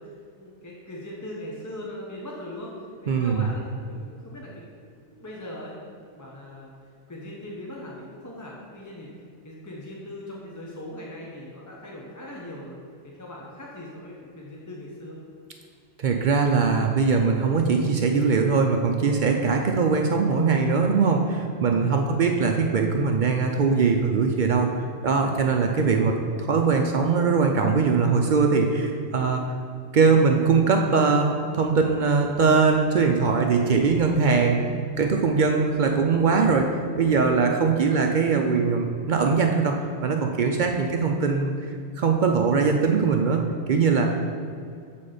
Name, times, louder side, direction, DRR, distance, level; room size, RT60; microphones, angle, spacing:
voice 1, 0.0-4.6 5.1-5.8 6.1-6.7 7.1-9.1 9.4-12.8 13.0-15.2 21.7-22.4 37.7-38.1, left 1 dB, 20° left, -3 dB, 0.7 m, -40 dB
voice 2, 3.1-3.5 16.0-24.7 25.0-26.2 26.5-29.4 29.9-31.3 31.5-34.6 35.0-36.7 37.0-39.8 40.0-41.5 42.0-44.1, right 5 dB, 55° right, 3 dB, 0.6 m, -21 dB
7.4 x 4.2 x 4.9 m, 2.3 s
omnidirectional pair, 1.1 m